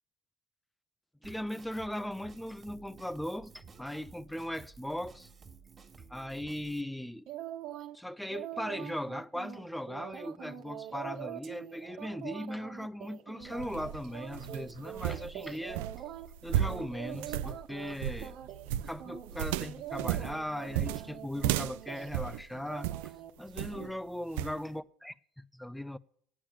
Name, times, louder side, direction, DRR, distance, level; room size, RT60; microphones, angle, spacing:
voice 1, 1.2-5.3 6.1-7.3 7.9-15.8 16.4-18.4 18.8-23.1 23.4-26.0, left 1 dB, 5° left, 0.6 m, -38 dB
Drum kit, 1.2-6.8, right 5 dB, 30° right, 2.1 m, -54 dB
sound 1, 7.3-8.0 8.3-16.3 16.6-18.0 18.2-18.7 19.0-22.4 22.7-23.3 23.7-23.9, right 11 dB, 65° right, 1.4 m, -44 dB
sound 2, 13.4-23.1 23.6-23.9 24.4-24.6, right 12 dB, 85° right, 0.5 m, -35 dB
9.2 x 8.6 x 8.8 m
supercardioid pair, 85°, 0 cm